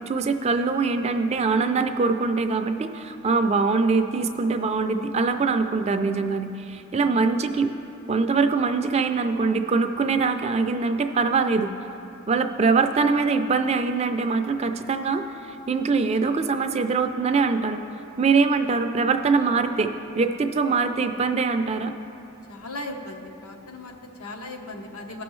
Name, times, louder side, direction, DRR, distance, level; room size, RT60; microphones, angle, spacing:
voice 1, 0.1-7.7 8.1-11.7 12.3-15.2 15.5-17.8 18.2-21.9, right 4 dB, 30° right, 7 dB, 0.3 m, -23 dB
voice 2, 22.5-25.2, left 2 dB, 85° left, 2 dB, 1.0 m, -37 dB
16.5 x 6.1 x 3.1 m, 2.9 s
head